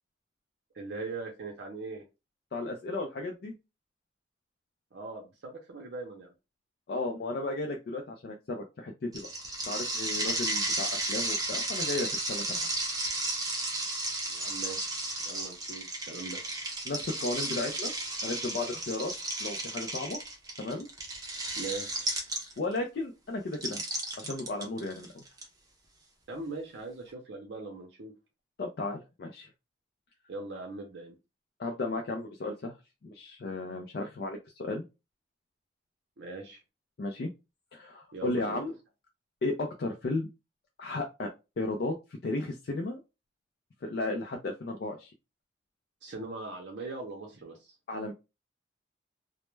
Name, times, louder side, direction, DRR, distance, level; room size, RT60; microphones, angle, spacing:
voice 1, 0.7-2.0 4.9-6.3 14.3-14.9 15.2-16.4 21.6-22.2 26.3-28.1 30.3-31.2 36.2-36.6 38.1-38.6 46.0-47.8, right 3 dB, 80° right, 1 dB, 0.5 m, -40 dB
voice 2, 2.5-3.6 6.9-9.3 9.7-12.7 16.9-17.9 18.2-19.1 19.4-20.2 20.6-20.9 22.6-25.2 28.6-29.5 31.6-32.7 33.0-34.8 37.0-37.3 37.7-38.7 39.4-40.3 40.8-42.0 42.2-43.0 43.8-45.1 47.9-48.1, left 2 dB, 60° left, 2 dB, 0.4 m, -34 dB
sound 1, 9.1-22.8 23.5-25.4, right 2 dB, 20° right, 0.5 m, -33 dB
2.1 x 2.0 x 3.1 m, 0.27 s
head